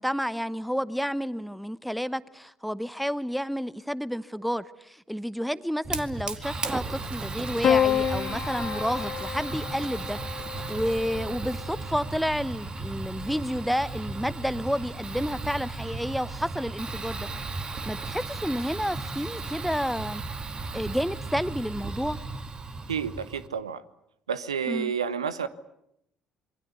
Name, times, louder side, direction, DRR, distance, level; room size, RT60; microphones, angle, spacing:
voice 1, 0.0-10.2 10.5-17.3 17.6-20.2 20.7-22.2 24.7-24.9, equal, ahead, 16 dB, 1.0 m, -30 dB
Fire, 5.8-23.5, right 3 dB, 30° right, 2.2 m, -35 dB
sound 1, 6.1-7.8 9.1-9.4 9.7-11.0, right 4 dB, 60° right, 7.3 m, -48 dB
Piano, 7.6-12.1 13.3-14.0, left 9 dB, 45° left, 1.7 m, -29 dB
voice 2, 22.9-23.8 24.3-25.5, right 7 dB, 80° right, 15 dB, 1.0 m, -30 dB
27.0 x 23.5 x 8.3 m, 0.78 s
figure-of-eight pair, 50°, 3 cm